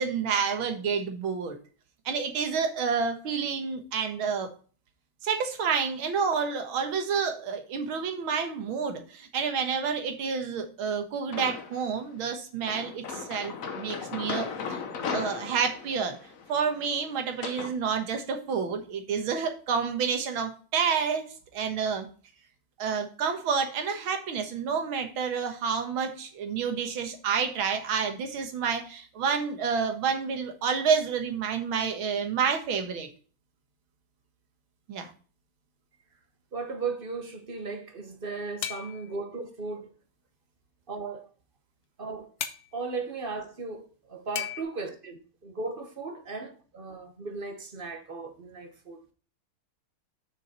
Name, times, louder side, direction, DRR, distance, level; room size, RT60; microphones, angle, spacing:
voice 1, 0.0-1.6 2.1-4.5 5.2-14.8 15.1-16.2 16.5-21.3 21.5-22.1 22.8-33.1 34.9-35.1, right 6 dB, 80° right, 2.1 m, -29 dB
sound 1, 11.3-11.9 12.7-17.7, left 5 dB, 50° left, 1.2 m, -37 dB
voice 2, 36.5-39.9 40.9-41.3 42.0-42.3 42.7-49.0, right 4 dB, 35° right, 1.0 m, -36 dB
sound 2, 38.6-39.1 42.4-42.6 44.4-44.6, left 10 dB, 70° left, 1.5 m, -34 dB
6.7 x 6.3 x 4.3 m
omnidirectional pair, 2.2 m